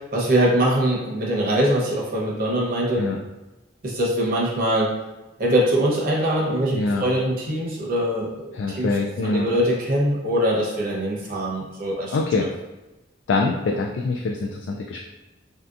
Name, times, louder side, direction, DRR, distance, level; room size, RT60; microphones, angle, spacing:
voice 1, 0.1-3.0 3.8-4.9 5.4-8.9 9.2-12.2, right 1 dB, 50° right, -4 dB, 0.8 m, -22 dB
voice 2, 6.7-7.0 8.5-9.5 12.1-12.5 13.3-15.0, left 3 dB, 85° left, 0 dB, 0.3 m, -24 dB
3.3 x 2.7 x 2.4 m, 1.1 s
head